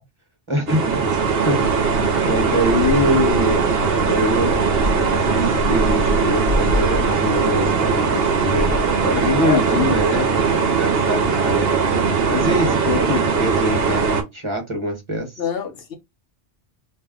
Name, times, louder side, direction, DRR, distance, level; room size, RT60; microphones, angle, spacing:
voice 1, 0.5-1.0 1.4-1.9 2.2-3.7 4.0-4.7 5.1-8.8 9.0-10.3 10.5-12.0 12.3-14.0 14.3-15.3, left 1 dB, 25° right, 1.1 m, -23 dB
sound 1, 0.7-14.2, right 4 dB, 60° right, 0.9 m, -19 dB
voice 2, 9.4-10.1 11.2-11.5 15.4-16.0, left 7 dB, 60° left, 1.0 m, -28 dB
2.6 x 2.1 x 3.6 m
omnidirectional pair, 1.2 m